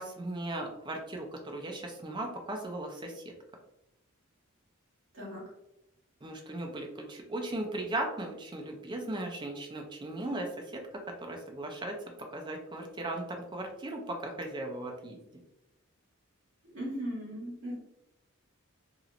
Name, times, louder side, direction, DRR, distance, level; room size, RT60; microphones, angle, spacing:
voice 1, 0.0-3.3 6.2-10.8 11.2-12.0 12.3-15.2, right 1 dB, 20° right, 2 dB, 0.4 m, -37 dB
voice 2, 16.7-17.7, equal, 60° right, -5 dB, 1.2 m, -37 dB
2.9 x 2.9 x 2.5 m, 0.86 s
head